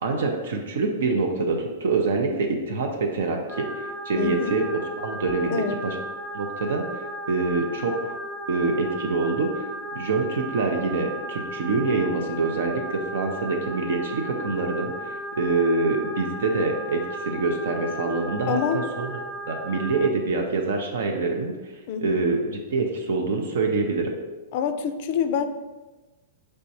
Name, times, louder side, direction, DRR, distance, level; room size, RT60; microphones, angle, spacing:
voice 1, 0.0-4.7 5.0-6.0 6.3-8.1 8.5-9.6 9.9-19.2 19.5-21.5 22.0-24.1, right 3 dB, 75° right, 3 dB, 0.5 m, -25 dB
sound 1, 3.5-20.1, right 1 dB, ahead, 0.6 m, -35 dB
voice 2, 4.2-4.5 5.5-5.8 18.5-18.9 21.9-22.2 24.5-25.4, left 7 dB, 55° left, 9 dB, 0.3 m, -26 dB
4.5 x 3.3 x 2.7 m, 1.2 s
hypercardioid pair, 120°, 0 cm